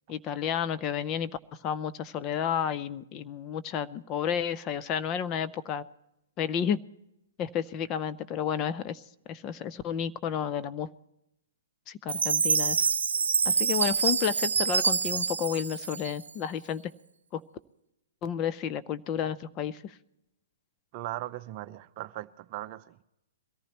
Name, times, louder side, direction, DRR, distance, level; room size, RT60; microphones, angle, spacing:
voice 1, 0.1-1.3 1.6-5.8 6.4-6.8 7.4-9.0 9.3-10.9 11.9-12.9 13.5-16.8 17.3-17.4 18.2-19.9, left 8 dB, 30° left, 13 dB, 0.6 m, -31 dB
Chime, 12.1-16.5, right 5 dB, 80° right, 0.8 m, -26 dB
voice 2, 20.9-23.0, right 15 dB, 40° right, 12 dB, 0.6 m, -38 dB
22.5 x 14.5 x 3.0 m, 0.87 s
hypercardioid pair, 125°, 0 cm